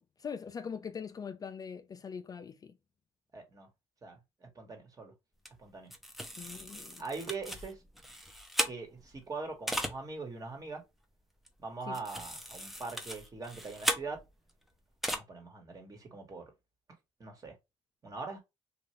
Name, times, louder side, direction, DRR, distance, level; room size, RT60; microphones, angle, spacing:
voice 1, 0.0-2.7 6.4-7.0 11.9-12.0, left 6 dB, 35° left, 0.4 m, -42 dB
voice 2, 3.3-3.7 4.0-5.1 5.6-5.9 7.0-7.8 8.7-10.8 11.6-14.2 15.1-16.5 17.2-17.6 18.0-18.4, right 4 dB, 35° right, 1.3 m, -42 dB
sound 1, 5.5-5.6 5.9-9.2 9.7-10.0 11.5-11.6 11.9-14.5 15.0-15.2, equal, ahead, 0.6 m, -37 dB
2.7 x 2.4 x 3.1 m
supercardioid pair, 75°, 10 cm